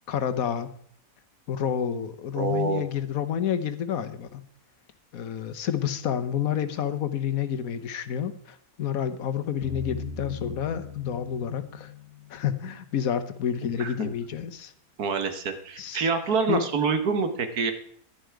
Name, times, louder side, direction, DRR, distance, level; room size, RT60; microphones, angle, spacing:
voice 1, 0.1-0.7 1.5-4.4 5.1-11.9 12.3-14.7 15.8-16.1 16.5-16.6, left 8 dB, 70° left, 11 dB, 1.3 m, -29 dB
voice 2, 2.4-2.8 13.8-14.1 15.0-17.7, right 5 dB, 80° right, 9 dB, 1.8 m, -26 dB
sound 1, 9.6-12.7, left 5 dB, 50° left, 1.3 m, -39 dB
11.5 x 10.0 x 4.6 m, 0.62 s
omnidirectional pair, 1.6 m